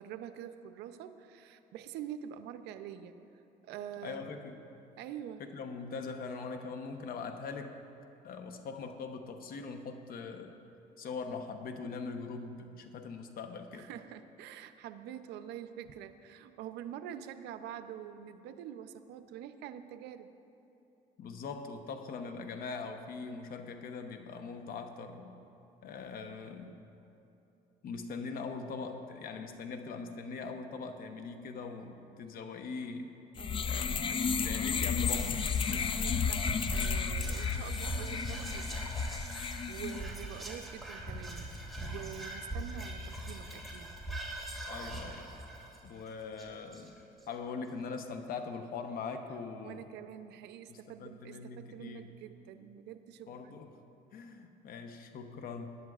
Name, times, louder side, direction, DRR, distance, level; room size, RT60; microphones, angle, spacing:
voice 1, 0.0-3.2 3.6-4.2 4.9-5.5 13.7-20.3 33.4-34.6 35.7-39.1 39.4-41.5 41.8-43.9 49.6-53.6, right 10 dB, 85° right, 10 dB, 0.6 m, -46 dB
voice 2, 4.0-4.6 5.4-7.8 8.2-10.6 11.0-13.9 21.2-25.4 25.8-26.8 27.8-33.2 33.6-34.0 34.3-35.5 44.7-45.4 45.8-47.0 47.3-49.8 50.7-52.1 53.3-53.7 54.1-55.8, left 4 dB, 60° left, 6 dB, 0.9 m, -42 dB
sound 1, 33.4-40.0, left 6 dB, 30° left, 0.4 m, -33 dB
Whispering, 34.7-47.2, right 1 dB, ahead, 2.1 m, -42 dB
20.5 x 10.5 x 2.4 m, 2.9 s
cardioid pair, 110°, 17 cm